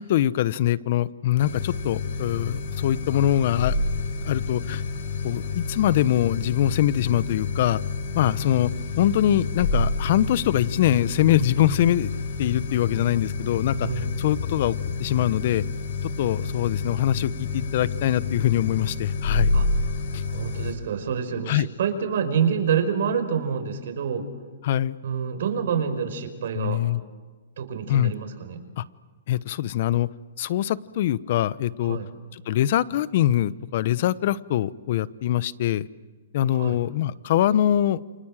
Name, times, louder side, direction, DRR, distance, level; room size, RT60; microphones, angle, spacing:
voice 1, 0.0-3.8 4.2-4.8 5.2-7.8 8.1-8.7 9.0-12.1 12.4-15.6 16.2-19.5 20.1-20.2 21.5-21.7 24.6-25.0 26.5-27.0 27.9-28.1 28.8-28.9 29.3-30.1 30.4-32.0 32.3-35.9 36.3-38.0, left 12 dB, 55° left, 17 dB, 1.0 m, -23 dB
sound 1, 1.4-20.7, left 4 dB, 75° left, 7.7 m, -29 dB
voice 2, 13.8-14.2 19.5-19.7 20.3-24.3 25.0-26.8 27.6-28.6 31.8-32.1 36.5-36.8, right 7 dB, 70° right, 8 dB, 5.5 m, -27 dB
29.5 x 26.5 x 7.5 m, 1.3 s
hypercardioid pair, 140°, 0 cm